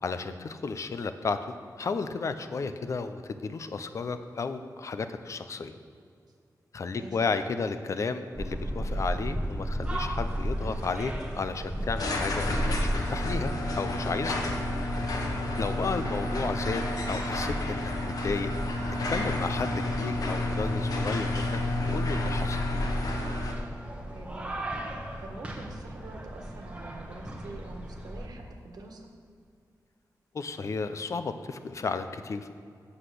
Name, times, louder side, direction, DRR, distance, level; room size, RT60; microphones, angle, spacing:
voice 1, 0.0-5.7 6.7-14.4 15.6-18.5 19.1-21.6 21.9-22.6 30.3-32.5, left 4 dB, 50° left, 10 dB, 0.6 m, -33 dB
sound 1, 8.4-28.3, right 1 dB, 20° right, 1.1 m, -36 dB
sound 2, 9.9-23.5, left 1 dB, 65° left, 1.2 m, -30 dB
voice 2, 16.0-16.4 24.1-24.7 25.2-29.1, right 2 dB, 75° right, 2 dB, 1.5 m, -45 dB
8.0 x 7.8 x 6.7 m, 2.3 s
wide cardioid pair, 175°, 7 cm